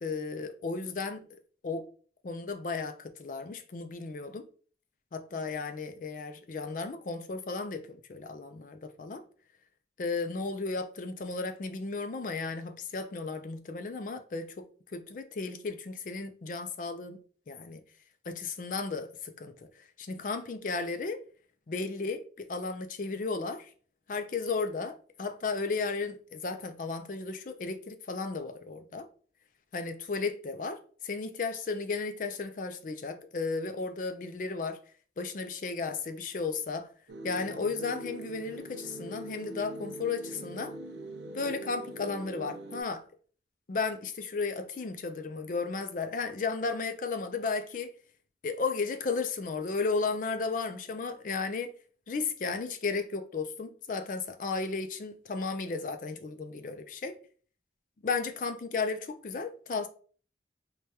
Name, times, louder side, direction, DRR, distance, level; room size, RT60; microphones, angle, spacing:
voice 1, 0.0-1.3 1.6-1.9 2.2-4.5 5.1-9.2 10.0-14.7 14.9-17.2 17.5-17.8 18.3-19.5 20.0-21.2 21.7-23.7 24.1-29.1 29.7-34.8 35.2-36.9 37.2-40.8 41.3-43.0 43.7-47.9 48.4-51.7 52.1-57.2 58.0-59.9, left 4 dB, 45° left, 0.4 m, -34 dB
sound 1, 37.1-42.8, right 1 dB, 70° right, 0.5 m, -42 dB
4.8 x 2.2 x 2.7 m
head